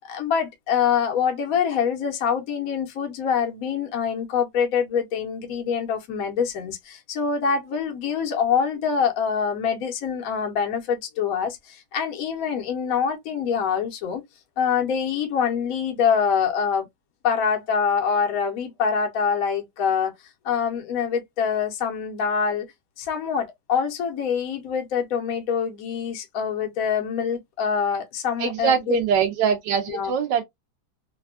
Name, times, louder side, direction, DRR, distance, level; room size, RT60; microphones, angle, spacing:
voice 1, 0.0-14.2 14.6-16.9 17.2-20.1 20.4-22.7 23.0-29.0 29.9-30.1, left 7 dB, 60° left, 0.9 m, -25 dB
voice 2, 28.4-30.4, right 7 dB, 75° right, 1.1 m, -23 dB
3.3 x 2.2 x 2.2 m
omnidirectional pair, 2.2 m